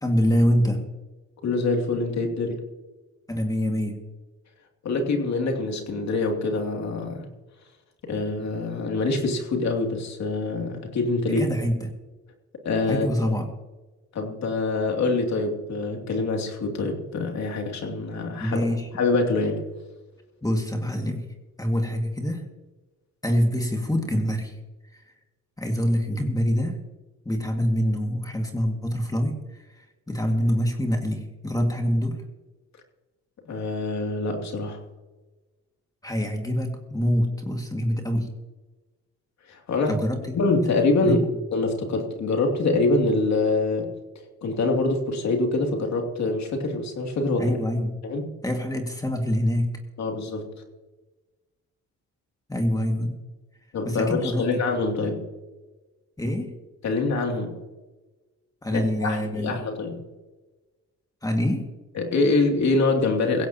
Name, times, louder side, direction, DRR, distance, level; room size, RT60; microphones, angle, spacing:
voice 1, 0.0-0.9 3.3-4.0 11.3-11.9 12.9-13.5 18.4-18.9 20.4-21.3 21.6-22.5 23.2-24.6 24.8-25.0 25.6-26.8 27.3-32.2 36.0-38.3 39.9-40.4 41.0-41.2 47.4-48.0 48.4-49.8 52.5-53.2 53.9-54.5 56.2-56.5 58.6-59.6 61.2-61.7, equal, 10° left, 3 dB, 2.1 m, -25 dB
voice 2, 1.4-2.7 4.8-7.3 8.0-11.5 12.6-13.1 14.1-18.7 18.9-19.7 33.5-34.8 39.5-40.0 40.3-43.9 44.4-47.6 48.0-48.2 50.0-50.5 53.7-55.2 56.8-57.6 58.7-60.0 61.9-63.5, left 3 dB, 65° left, 3 dB, 2.8 m, -25 dB
17.0 x 16.0 x 2.9 m, 1.2 s
cardioid pair, 90°, 30 cm